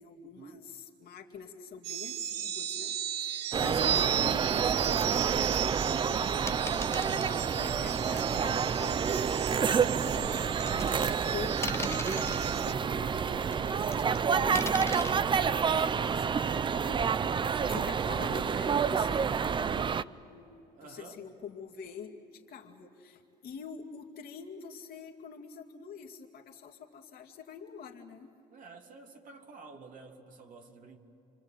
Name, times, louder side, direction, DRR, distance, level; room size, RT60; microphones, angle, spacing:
voice 1, 0.0-6.6 6.9-9.1 9.9-11.1 11.3-28.3, left 6 dB, 65° left, 3 dB, 2.4 m, -46 dB
sound 1, 1.8-12.7, right 11 dB, 80° right, 0.9 m, -35 dB
sound 2, 3.5-20.0, right 6 dB, 30° right, 0.5 m, -29 dB
sound 3, 6.5-7.5 8.6-8.7 10.1-11.3 11.6-12.5 13.5-14.2 14.6-15.1, left 3 dB, 15° left, 0.8 m, -39 dB
voice 2, 17.6-17.9 20.7-21.2 28.5-31.0, right 4 dB, 50° right, 2 dB, 2.8 m, -50 dB
29.0 x 24.5 x 8.0 m, 2.9 s
cardioid pair, 110°, 17 cm